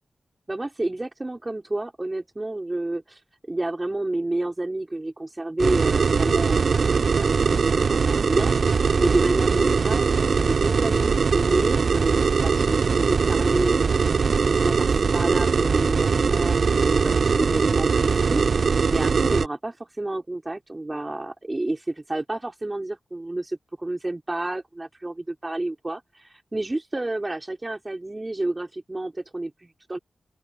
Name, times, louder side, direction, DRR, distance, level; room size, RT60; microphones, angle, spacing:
voice 1, 0.5-3.2 3.5-7.3 7.7-12.8 13.1-30.0, right 2 dB, 25° right, 4.5 m, -30 dB
sound 1, 5.6-19.5, right 5 dB, 75° right, 4.7 m, -21 dB
open air
cardioid pair, 60°, 0 cm